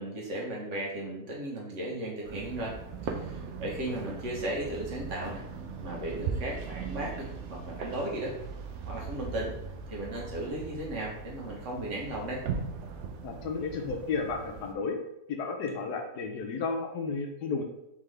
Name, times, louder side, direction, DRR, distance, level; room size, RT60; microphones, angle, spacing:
voice 1, 0.0-2.8 3.2-5.4 5.8-8.3 8.9-9.5 9.9-12.4, right 1 dB, 50° right, -3 dB, 1.3 m, -35 dB
sound 1, 2.2-14.7, right 5 dB, 80° right, 0.6 m, -39 dB
voice 2, 13.2-15.0 15.3-17.6, left 4 dB, 80° left, 3 dB, 1.2 m, -33 dB
3.7 x 3.6 x 3.2 m, 0.85 s
omnidirectional pair, 1.7 m